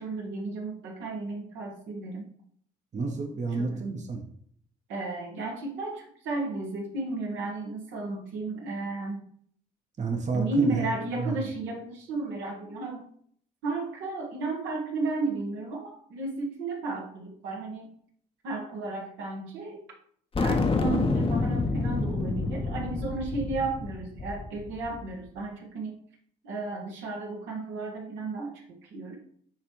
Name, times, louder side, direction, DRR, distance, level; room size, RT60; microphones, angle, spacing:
voice 1, 0.0-2.3 3.6-3.8 4.9-9.2 10.3-13.0 13.6-17.9 18.4-19.8 20.4-26.0 26.4-29.2, right 3 dB, 70° right, 0 dB, 1.3 m, -33 dB
voice 2, 2.9-4.2 10.0-10.9 11.2-11.5, right 4 dB, 35° right, 3 dB, 1.0 m, -30 dB
sound 1, 20.3-25.0, left 3 dB, 25° left, 0.8 m, -28 dB
9.9 x 3.4 x 3.0 m, 0.62 s
hypercardioid pair, 50°, 20 cm